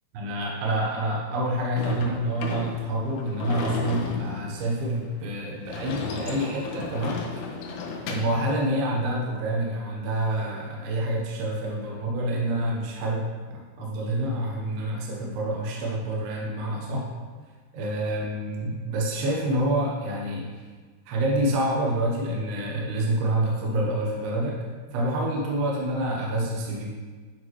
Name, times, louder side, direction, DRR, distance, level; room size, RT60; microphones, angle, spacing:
voice 1, 0.1-7.4 8.1-17.1 17.7-20.6 21.1-24.6 24.9-27.0, right 1 dB, 70° right, -3 dB, 2.7 m, -27 dB
Sliding door / Slam, 1.8-8.4, left 4 dB, 80° left, 2.8 m, -34 dB
10.5 x 4.5 x 3.0 m, 1.5 s
omnidirectional pair, 5.0 m